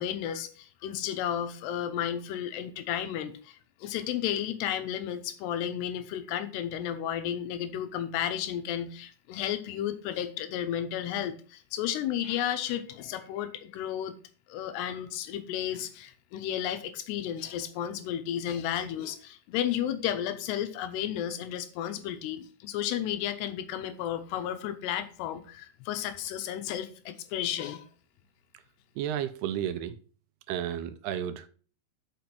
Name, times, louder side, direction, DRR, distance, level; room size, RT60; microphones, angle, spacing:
voice 1, 0.0-14.1 14.5-27.8, left 10 dB, 85° left, 3.0 m, -33 dB
voice 2, 29.0-30.0 30.5-31.5, right 10 dB, 85° right, 2.6 m, -32 dB
7.0 x 6.0 x 5.9 m
omnidirectional pair, 4.8 m